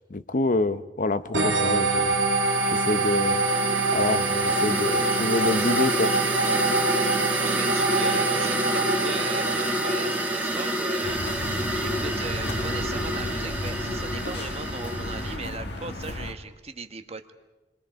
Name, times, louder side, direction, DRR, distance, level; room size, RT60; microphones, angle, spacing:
voice 1, 0.1-2.3 2.7-3.4 3.9-6.1, left 2 dB, 50° left, 13 dB, 0.8 m, -27 dB
sound 1, 1.3-10.7, right 3 dB, 90° right, 1.9 m, -25 dB
sound 2, 2.0-15.4, right 1 dB, 10° right, 1.8 m, -29 dB
voice 2, 7.3-11.2 11.7-17.3, right 4 dB, 35° right, 7 dB, 1.3 m, -38 dB
sound 3, 11.0-16.3, left 1 dB, 70° left, 1.7 m, -33 dB
29.5 x 23.0 x 5.2 m, 1.1 s
head